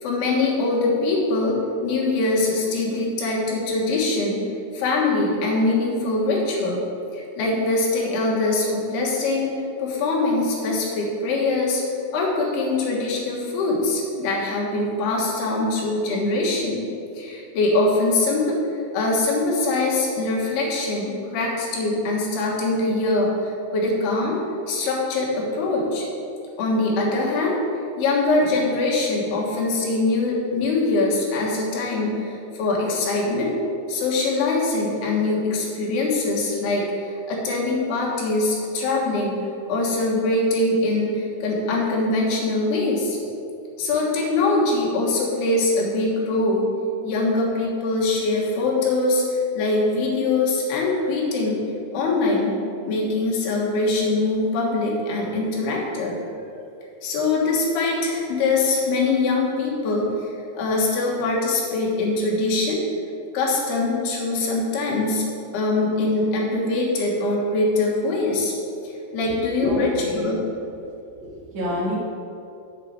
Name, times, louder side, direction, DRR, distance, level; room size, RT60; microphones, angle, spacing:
voice 1, 0.0-4.4 4.7-6.8 7.1-9.5 9.8-11.8 12.1-16.9 17.1-18.6 18.9-24.4 24.7-26.1 26.6-27.6 28.0-33.5 33.9-39.4 39.7-43.2 43.8-46.7 47.0-51.6 51.9-52.6 52.8-56.2 57.0-62.8 63.3-65.2 65.5-68.5 69.1-70.4, left 2 dB, 80° left, -3 dB, 3.5 m, -23 dB
voice 2, 69.6-70.3 71.2-72.0, equal, 55° right, -6 dB, 3.4 m, -27 dB
7.7 x 5.2 x 7.4 m, 2.6 s
omnidirectional pair, 4.6 m